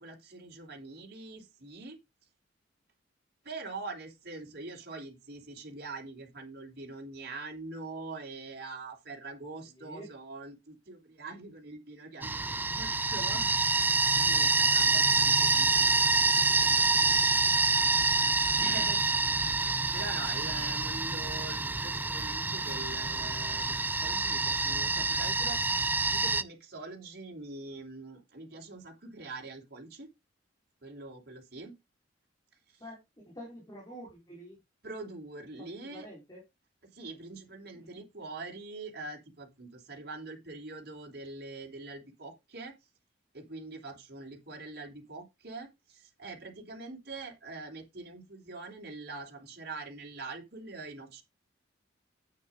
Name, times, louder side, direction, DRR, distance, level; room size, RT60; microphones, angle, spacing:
voice 1, 0.0-2.0 3.4-17.1 18.4-19.1 19.4-25.6 26.1-30.1 30.8-31.8 32.7-32.8 34.8-36.1 36.9-42.7 43.3-51.2, right 3 dB, 55° right, 3.3 m, -44 dB
sound 1, 12.2-26.4, right 3 dB, 10° right, 0.5 m, -27 dB
voice 2, 32.8-34.6 35.8-36.4 37.7-37.9, equal, 20° left, 4.0 m, -47 dB
9.8 x 9.0 x 3.7 m
head